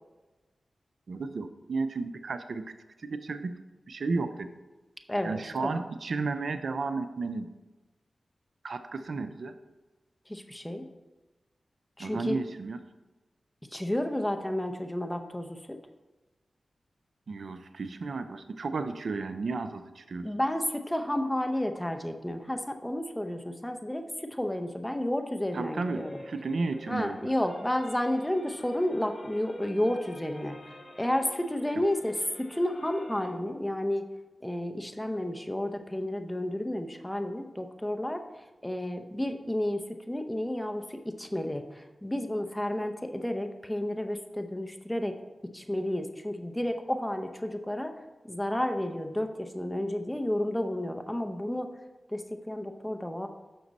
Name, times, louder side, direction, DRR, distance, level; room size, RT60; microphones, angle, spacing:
voice 1, 1.1-3.6 3.9-4.5 5.2-7.5 8.6-9.6 12.0-12.8 17.3-20.3 25.5-27.3, right 3 dB, 75° right, 10 dB, 0.4 m, -33 dB
voice 2, 5.1-5.8 10.3-10.9 12.0-12.4 13.7-15.8 20.2-26.2 26.9-34.1 34.4-45.2 45.5-47.9 48.2-51.7 52.1-53.3, left 1 dB, 10° left, 6 dB, 0.7 m, -31 dB
sound 1, 25.7-33.3, left 1 dB, 55° left, 1.5 m, -48 dB
6.4 x 5.9 x 4.0 m, 1.2 s
cardioid pair, 45°, 0 cm